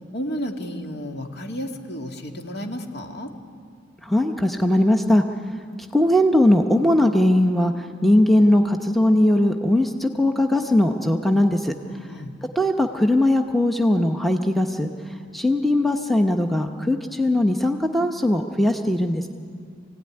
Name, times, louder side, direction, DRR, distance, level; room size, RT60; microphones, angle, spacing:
voice 1, 0.1-3.3 12.1-12.3, equal, 55° left, 3 dB, 2.1 m, -32 dB
voice 2, 4.0-5.2 5.9-7.7 8.0-11.7 12.6-14.9 15.3-19.3, left 1 dB, ahead, 4 dB, 0.9 m, -19 dB
25.0 x 17.0 x 9.8 m, 2.2 s
head